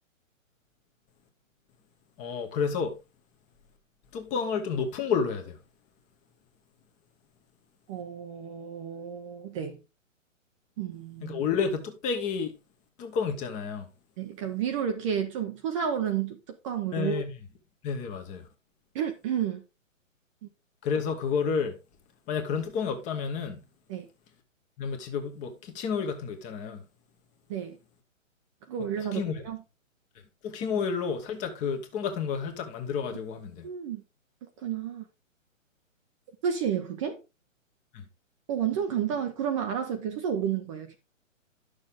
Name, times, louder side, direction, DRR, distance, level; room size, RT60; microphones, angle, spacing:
voice 1, 2.2-3.0 4.1-5.6 11.2-12.6 13.0-13.9 16.9-17.3 17.8-18.5 20.8-21.8 22.3-23.6 24.8-26.9 29.0-29.4 30.4-33.7 37.9-38.0, left 6 dB, 20° left, 1.2 m, -30 dB
voice 2, 7.9-9.8 10.8-11.4 14.2-17.2 18.9-19.6 23.9-24.1 27.5-27.8 28.7-29.6 33.6-34.0 34.6-35.0 36.4-37.2 38.5-40.9, right 8 dB, 25° right, 0.8 m, -31 dB
11.0 x 6.6 x 3.7 m
hypercardioid pair, 145°, 40 cm